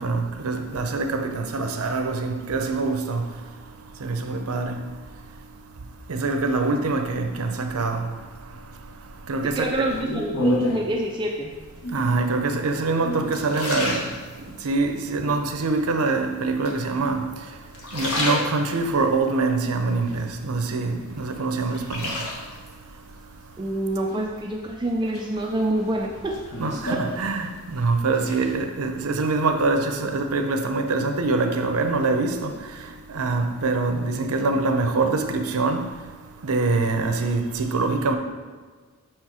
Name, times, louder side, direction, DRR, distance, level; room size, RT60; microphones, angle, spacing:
voice 1, 0.0-3.2 4.0-4.8 6.1-8.0 9.3-9.9 11.9-14.1 14.6-17.2 17.9-22.0 26.6-32.5 33.1-35.9 36.4-38.2, right 3 dB, 80° right, 0.6 m, -24 dB
voice 2, 9.6-11.5 23.6-26.4 26.9-27.0, right 1 dB, 20° right, 0.4 m, -26 dB
sound 1, 9.9-11.0 11.7-12.2 12.8-14.7 15.2-15.8 16.7-17.3 17.7-19.0 19.5-20.7 21.1-22.7 24.1-24.7 25.1-27.8 28.0-28.5, left 1 dB, 80° left, 1.2 m, -31 dB
6.3 x 4.4 x 4.8 m
head